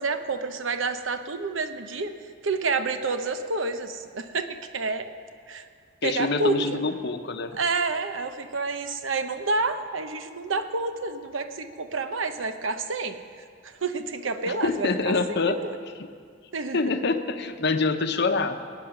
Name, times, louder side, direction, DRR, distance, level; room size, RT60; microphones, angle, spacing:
voice 1, 0.0-2.1 2.4-5.1 5.5-5.7 6.0-6.8 7.6-13.2 13.6-15.8 16.5-16.8, right 3 dB, 90° right, 9 dB, 0.9 m, -29 dB
voice 2, 6.0-7.5 14.5-15.6 16.7-18.6, left 3 dB, 60° left, 7 dB, 0.8 m, -26 dB
19.0 x 9.2 x 5.9 m, 2.1 s
head